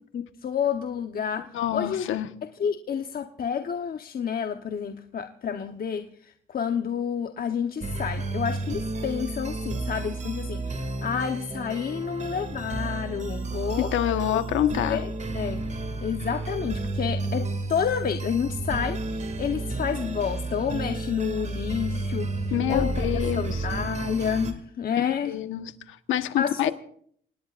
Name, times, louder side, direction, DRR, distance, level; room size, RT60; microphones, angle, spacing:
voice 1, 0.1-2.1 2.6-13.9 14.3-14.4 14.8-15.7 16.0-23.1 23.3-25.3 26.4-26.7, left 7 dB, 50° left, 6 dB, 1.1 m, -30 dB
voice 2, 1.5-2.3 13.8-15.0 22.5-23.7 24.9-26.7, left 12 dB, 85° left, 9 dB, 1.3 m, -27 dB
sound 1, 7.8-24.5, right 2 dB, 35° right, 2.4 m, -31 dB
28.0 x 19.0 x 2.5 m, 0.62 s
cardioid pair, 90°, 20 cm